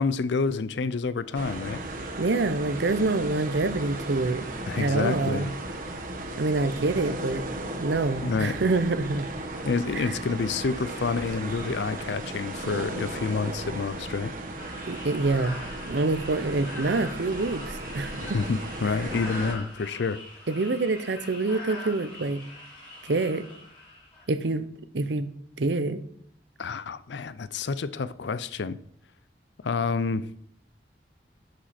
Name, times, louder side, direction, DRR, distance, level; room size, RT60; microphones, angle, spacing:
voice 1, 0.0-1.8 4.7-5.5 8.2-8.6 9.7-14.3 18.2-20.2 26.6-28.8 29.6-30.2, left 4 dB, 80° left, 0.5 m, -28 dB
sound 1, 1.3-19.6, right 2 dB, 50° right, 1.3 m, -36 dB
voice 2, 2.2-4.4 4.7-5.5 6.4-7.5 7.8-9.2 10.0-10.1 14.9-15.6 15.9-18.1 20.5-22.4 23.1-23.4 24.3-24.7 24.9-25.3 25.6-26.0, right 3 dB, 75° right, 0.7 m, -26 dB
sound 2, 14.5-24.2, left 2 dB, 30° left, 3.4 m, -42 dB
12.5 x 5.1 x 4.3 m
head